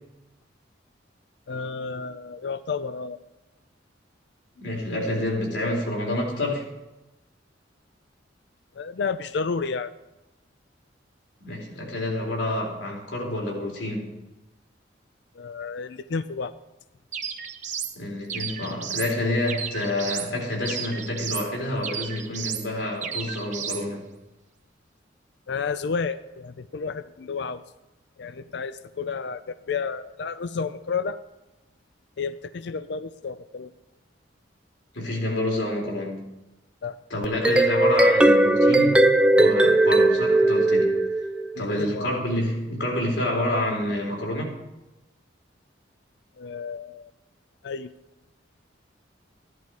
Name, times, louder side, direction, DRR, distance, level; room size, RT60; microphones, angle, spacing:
voice 1, 1.5-3.2 8.8-9.9 15.4-16.5 25.5-27.6 28.2-31.2 32.2-33.7 36.8-37.0 41.6-42.1 46.4-47.1 47.6-47.9, left 5 dB, 65° left, 13 dB, 0.4 m, -31 dB
voice 2, 4.6-6.7 11.4-14.2 18.0-24.1 34.9-36.3 37.1-39.0 39.3-40.9 41.6-44.5, left 1 dB, 80° left, -1 dB, 3.7 m, -28 dB
sound 1, 17.1-17.9 18.3-19.1 19.5-20.3 20.6-21.5 21.8-22.7 23.0-23.8, right 7 dB, 40° right, 0.9 m, -33 dB
sound 2, 37.2-41.6, right 1 dB, 5° right, 0.5 m, -18 dB
15.0 x 11.0 x 4.6 m, 1.0 s
head